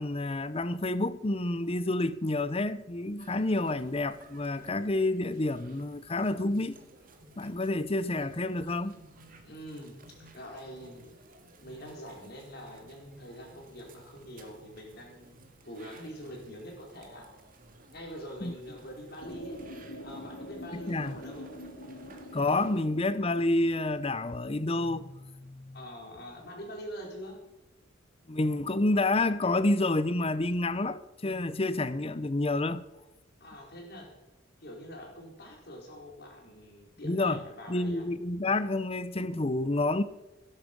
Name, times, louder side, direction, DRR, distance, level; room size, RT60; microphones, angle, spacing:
voice 1, 0.0-6.7 7.4-9.0 18.4-18.5 20.7-21.2 22.3-25.7 28.3-32.8 37.0-37.4 37.7-40.0, left 2 dB, 30° left, 0.7 m, -29 dB
sound 1, 3.2-22.8, right 2 dB, 45° right, 1.9 m, -57 dB
voice 2, 9.4-11.1 11.6-15.4 15.6-17.3 17.9-19.6 20.0-21.5 21.8-22.1 25.7-27.4 33.4-34.2 34.6-38.0, equal, 55° left, 4.4 m, -45 dB
sound 2, 19.2-24.2, left 1 dB, 85° left, 2.4 m, -45 dB
17.0 x 11.5 x 5.3 m
head